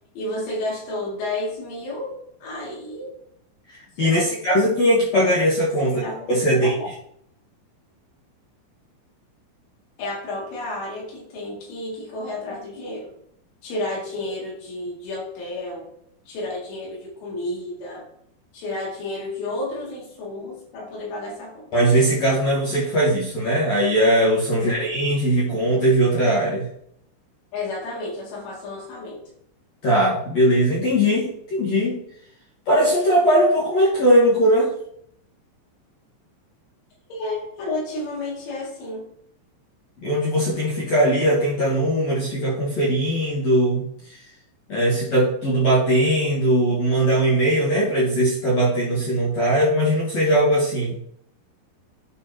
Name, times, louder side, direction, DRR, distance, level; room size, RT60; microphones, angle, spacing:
voice 1, 0.1-3.1 4.0-4.4 5.8-6.9 10.0-13.1 13.6-15.9 16.3-18.1 18.5-21.7 24.5-24.8 27.5-29.2 37.1-39.1, left 2 dB, 90° left, -4 dB, 5.0 m, -31 dB
voice 2, 3.7-6.0 6.3-6.7 21.7-26.7 29.8-32.0 32.7-34.7 40.0-44.2 44.7-51.0, right 1 dB, 60° left, -7 dB, 1.8 m, -20 dB
12.0 x 4.6 x 2.9 m, 0.70 s
omnidirectional pair, 5.4 m